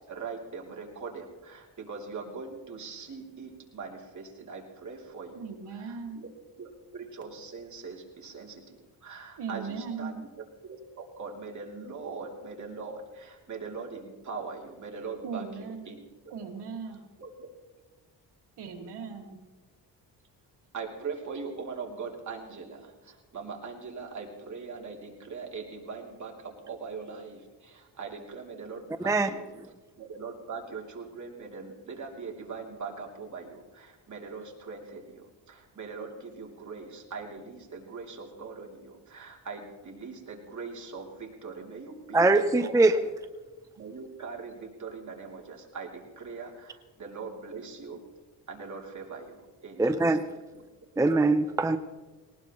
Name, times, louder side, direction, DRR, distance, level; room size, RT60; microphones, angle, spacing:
voice 1, 0.1-6.2 6.6-10.2 10.9-16.0 17.2-17.3 20.7-29.5 30.0-43.0 43.8-48.0 48.5-50.2 50.5-50.6, right 4 dB, 45° right, 3.1 m, -41 dB
voice 2, 5.3-6.2 9.4-10.2 15.2-16.0 16.3-17.0 18.6-19.4, right 5 dB, 75° right, 2.3 m, -38 dB
voice 3, 42.1-43.0 49.8-50.2 51.0-51.8, right 2 dB, 10° right, 0.6 m, -22 dB
19.5 x 19.0 x 3.1 m
cardioid pair, 105°, 40 cm